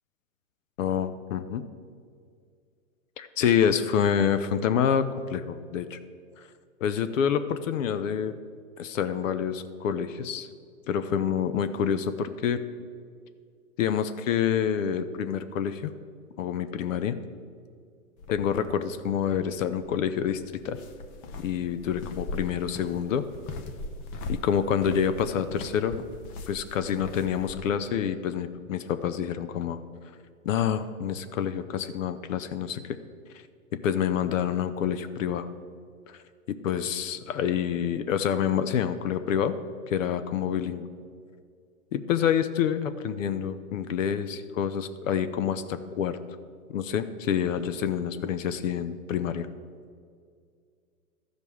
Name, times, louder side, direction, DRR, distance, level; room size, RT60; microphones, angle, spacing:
voice 1, 0.8-1.6 3.2-6.0 6.4-6.5 6.8-8.3 8.8-10.5 10.9-12.6 13.8-15.9 16.4-17.1 18.3-20.8 21.4-23.2 24.3-25.9 26.5-29.8 30.4-33.0 33.8-35.5 36.5-39.5 39.9-40.9 41.9-46.2 46.7-49.5, left 8 dB, 60° left, 11 dB, 0.7 m, -27 dB
sound 1, 18.2-27.7, left 2 dB, 20° left, 0.5 m, -41 dB
13.0 x 5.3 x 6.1 m, 2.2 s
hypercardioid pair, 130°, 43 cm